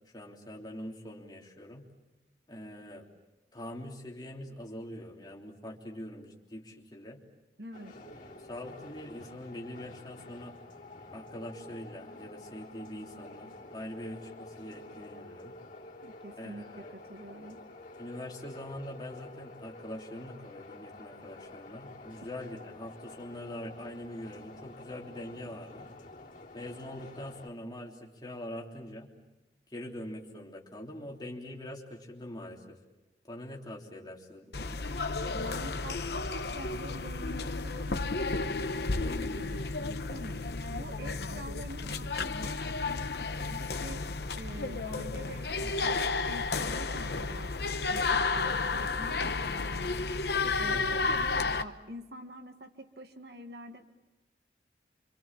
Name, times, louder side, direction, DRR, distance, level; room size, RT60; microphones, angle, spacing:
voice 1, 0.1-1.9 2.5-3.1 3.5-7.2 8.0-8.2 8.4-10.6 11.1-15.5 16.4-16.9 18.0-25.9 26.5-29.1 29.7-32.8 33.3-34.9 50.4-51.0, left 1 dB, 25° left, -1 dB, 3.3 m, -43 dB
voice 2, 7.6-8.0 16.0-17.6 35.3-40.4 40.7-44.0 44.3-47.5 47.9-50.0 50.6-51.1 51.6-53.9, right 1 dB, 65° right, 6 dB, 1.8 m, -46 dB
sound 1, 7.7-27.5, left 2 dB, 45° left, 3.3 m, -49 dB
sound 2, 34.5-51.6, left 3 dB, 65° left, 1.0 m, -32 dB
27.0 x 26.5 x 7.5 m, 0.99 s
head